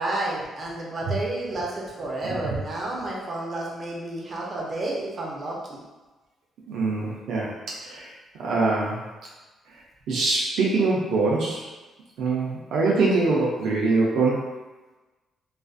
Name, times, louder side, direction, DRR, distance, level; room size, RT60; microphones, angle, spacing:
voice 1, 0.0-5.8, right 2 dB, 40° right, -3 dB, 0.7 m, -31 dB
voice 2, 6.7-8.1 8.3-9.0 10.1-11.6 12.2-14.4, right 3 dB, 80° right, -4 dB, 0.4 m, -23 dB
2.5 x 2.4 x 2.3 m, 1.2 s
cardioid pair, 90°, 0 cm